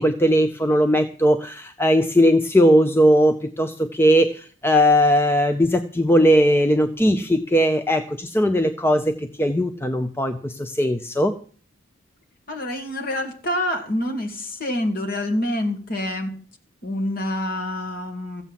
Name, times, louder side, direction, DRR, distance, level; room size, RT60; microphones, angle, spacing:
voice 1, 0.0-11.3, equal, 10° left, 7 dB, 0.7 m, -19 dB
voice 2, 12.5-16.3 16.8-18.4, left 1 dB, 45° left, 3 dB, 2.8 m, -26 dB
15.0 x 8.3 x 7.5 m, 0.41 s
head